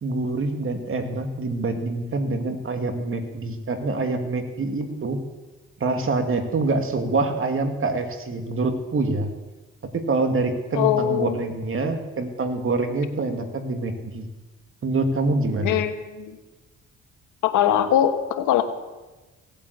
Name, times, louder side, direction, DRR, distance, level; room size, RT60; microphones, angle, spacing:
voice 1, 0.0-5.2 5.8-9.3 9.9-14.3 14.8-15.8, right 3 dB, 45° right, 5 dB, 2.3 m, -25 dB
voice 2, 10.7-11.4 15.6-16.4 17.4-18.6, left 10 dB, 90° left, 8 dB, 1.4 m, -21 dB
17.5 x 8.8 x 8.1 m, 1.2 s
cardioid pair, 90°, 30 cm